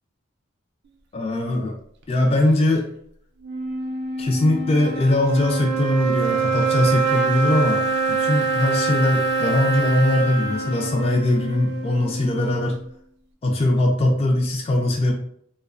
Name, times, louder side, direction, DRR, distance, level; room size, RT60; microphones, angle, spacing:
voice 1, 1.1-1.7 2.1-2.9 4.2-7.8 8.1-12.8 13.4-15.1, left 1 dB, 30° left, 1 dB, 0.3 m, -21 dB
sound 1, 3.4-12.9, right 4 dB, 55° right, 0.3 m, -25 dB
2.6 x 2.1 x 2.4 m, 0.67 s
head